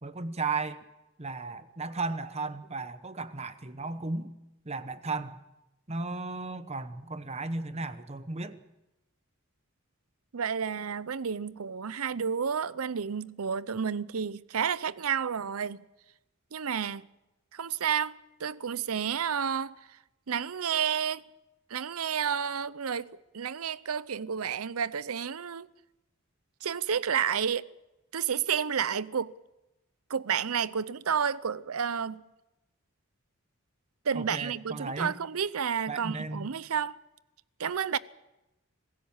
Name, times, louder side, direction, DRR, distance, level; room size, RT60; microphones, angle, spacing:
voice 1, 0.0-0.8 1.2-4.3 4.6-5.4 5.9-8.6 34.1-35.2 35.9-36.5, right 3 dB, 30° right, 1.0 m, -35 dB
voice 2, 10.3-15.8 16.5-17.0 17.5-19.7 20.3-21.2 21.7-23.1 23.3-25.7 26.6-27.7 28.1-29.3 30.1-32.2 34.1-37.0 37.6-38.0, right 7 dB, 85° right, 0.6 m, -30 dB
26.0 x 16.0 x 7.2 m
head